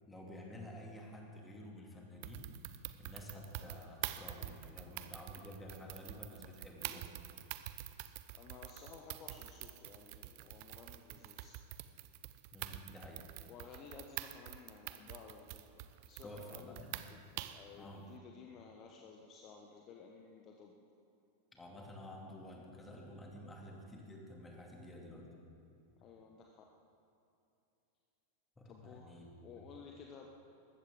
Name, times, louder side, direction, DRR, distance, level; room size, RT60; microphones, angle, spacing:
voice 1, 0.1-2.5 3.0-7.1 12.5-13.3 16.2-17.0 17.8-18.1 21.5-25.3 28.6-29.6, left 1 dB, 10° left, -1 dB, 2.7 m, -51 dB
sound 1, 2.2-17.7, right 15 dB, 45° right, 0.6 m, -46 dB
voice 2, 8.3-11.6 13.5-16.8 17.1-20.7 26.0-26.6 28.6-30.3, left 5 dB, 35° left, 1 dB, 1.2 m, -55 dB
20.0 x 15.0 x 3.8 m, 2.7 s
figure-of-eight pair, 90°, 0 cm